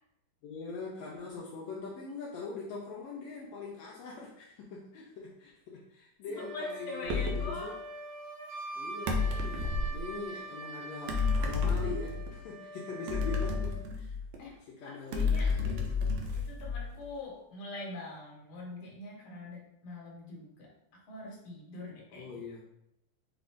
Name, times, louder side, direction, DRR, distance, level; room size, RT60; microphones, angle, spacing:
voice 1, 0.4-7.7 8.8-14.1 14.7-16.3 22.1-22.6, left 4 dB, 80° left, -4 dB, 1.5 m, -42 dB
Wind instrument woodwind instrument, 6.3-13.8, right 1 dB, 55° right, 1.5 m, -44 dB
voice 2, 6.4-7.7 12.9-13.3 14.4-14.5 14.8-15.5 16.3-20.7 21.1-22.2, left 2 dB, 55° left, -3 dB, 1.6 m, -43 dB
Apple fall and rolling, 7.1-7.5 9.1-10.0 11.1-12.3 13.1-14.4 15.1-17.0, left 4 dB, 75° right, 1.7 m, -31 dB
5.8 x 2.5 x 3.5 m, 0.83 s
omnidirectional pair, 3.8 m